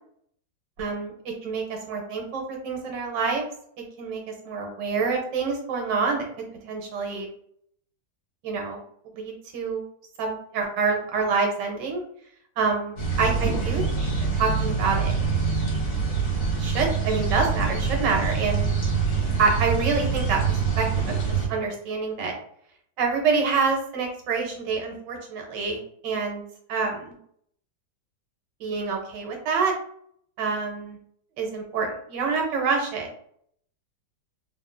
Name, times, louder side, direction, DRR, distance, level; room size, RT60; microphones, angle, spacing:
voice 1, 0.8-1.1 1.4-3.4 4.0-6.3 6.7-7.3 8.4-8.8 9.1-9.8 10.2-12.0 12.6-15.1 16.6-18.7 19.4-22.3 23.0-26.4 26.7-27.2 28.6-29.7 30.4-31.0 31.4-33.1, right 4 dB, 85° right, 2 dB, 1.4 m, -27 dB
sound 1, 13.0-21.5, right 5 dB, 65° left, 1.6 m, -25 dB
3.6 x 2.1 x 2.4 m, 0.67 s
omnidirectional pair, 1.9 m